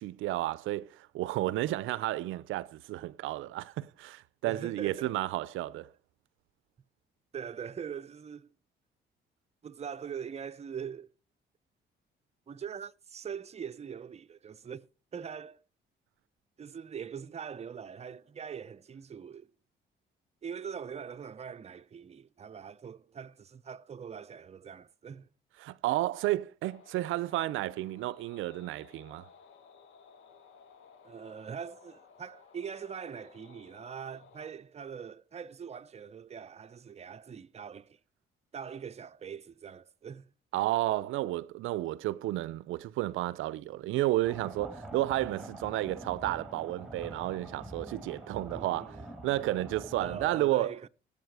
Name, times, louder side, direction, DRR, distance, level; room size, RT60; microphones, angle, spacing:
voice 1, 0.0-5.9 25.6-29.2 40.5-49.0 49.2-50.7, right 16 dB, 85° right, 0.5 m, -32 dB
voice 2, 4.5-5.1 7.3-8.5 9.6-11.1 12.5-15.6 16.6-19.5 20.4-25.3 31.0-38.0 38.5-40.3 48.5-49.1 50.0-50.9, right 7 dB, 35° right, 0.6 m, -42 dB
sound 1, 26.6-34.5, left 6 dB, 80° left, 1.7 m, -57 dB
sound 2, 44.2-50.4, right 1 dB, ahead, 3.2 m, -45 dB
17.0 x 7.3 x 4.7 m
cardioid pair, 90°, 20 cm